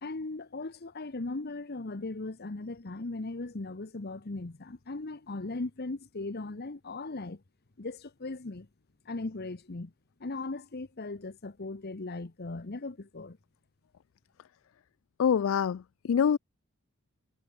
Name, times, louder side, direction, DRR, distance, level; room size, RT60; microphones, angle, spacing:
voice 1, 0.0-7.4 7.8-8.7 9.1-9.9 10.2-13.4, left 2 dB, 45° left, 1.0 m, -38 dB
voice 2, 15.2-16.4, left 7 dB, 65° left, 0.3 m, -25 dB
head